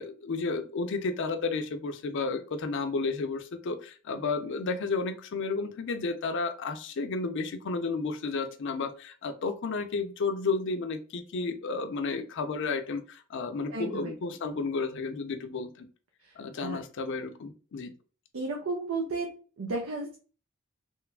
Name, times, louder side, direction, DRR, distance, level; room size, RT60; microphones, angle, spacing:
voice 1, 0.0-15.9 16.4-17.9, left 4 dB, 65° left, 8 dB, 0.4 m, -32 dB
voice 2, 13.7-14.3 16.6-16.8 18.3-19.3 19.6-20.2, right 3 dB, 80° right, 1 dB, 0.6 m, -33 dB
3.1 x 2.2 x 2.3 m, 0.38 s
head